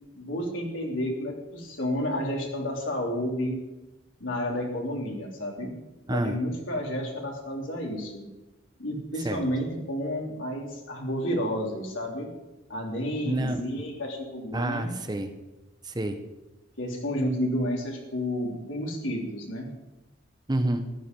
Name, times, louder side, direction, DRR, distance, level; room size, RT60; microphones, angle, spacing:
voice 1, 0.1-3.6 4.2-5.7 6.1-8.3 8.8-12.3 12.7-14.9 16.8-19.7, equal, 90° left, -1 dB, 3.5 m, -31 dB
voice 2, 6.1-6.4 9.2-9.4 13.2-13.6 14.5-15.3 15.8-16.2 20.5-20.9, right 1 dB, 20° right, 7 dB, 0.9 m, -28 dB
14.0 x 11.0 x 5.4 m, 1.0 s
head